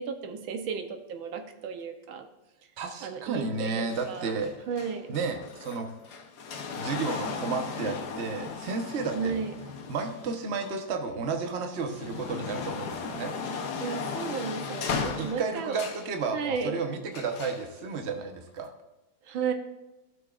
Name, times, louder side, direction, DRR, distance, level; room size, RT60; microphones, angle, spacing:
voice 1, 0.0-2.3 3.0-5.2 9.2-9.5 13.8-15.8 16.3-16.8 19.2-19.5, right 6 dB, 90° right, 6 dB, 1.7 m, -34 dB
voice 2, 2.8-4.5 5.1-5.9 6.8-9.4 9.9-13.3 15.2-18.7, right 4 dB, 45° right, 4 dB, 1.1 m, -32 dB
sound 1, 3.9-11.1 11.6-16.1 17.1-17.7 18.6-18.7, left 5 dB, 60° left, 1.4 m, -36 dB
16.5 x 6.4 x 2.4 m, 1.0 s
omnidirectional pair, 2.1 m